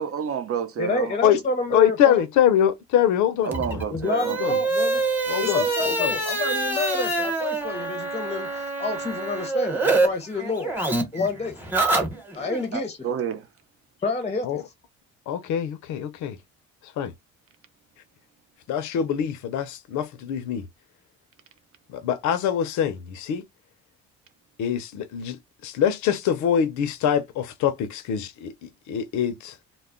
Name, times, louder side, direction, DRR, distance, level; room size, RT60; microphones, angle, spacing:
voice 1, 0.0-1.2 3.4-4.5 12.7-13.5, right 8 dB, 50° right, 0.6 m, -30 dB
voice 2, 0.8-2.2 3.9-5.0 5.4-11.6 12.3-13.0 14.0-14.6, left 3 dB, 20° left, 0.6 m, -29 dB
voice 3, 1.7-3.8 4.4-4.6 5.3-6.1 14.4-14.6 15.3-16.4 17.0-17.1 18.7-20.6 21.9-23.4 24.6-25.4 25.6-29.5, left 9 dB, 75° left, 0.6 m, -24 dB
sound 1, 3.5-10.1 10.3-12.6, right 2 dB, 5° right, 1.0 m, -26 dB
2.2 x 2.0 x 3.6 m
cardioid pair, 85°, 29 cm